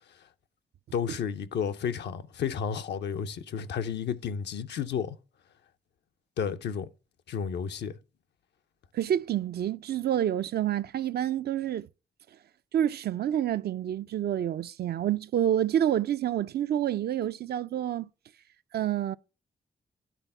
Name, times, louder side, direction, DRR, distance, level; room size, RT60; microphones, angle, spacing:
voice 1, 0.9-5.2 6.4-6.9 7.3-8.0, left 7 dB, 80° left, 0.6 m, -32 dB
voice 2, 8.9-11.9 12.7-18.1 18.7-19.2, right 10 dB, 65° right, 0.4 m, -28 dB
10.0 x 3.5 x 5.4 m
supercardioid pair, 50°, 18 cm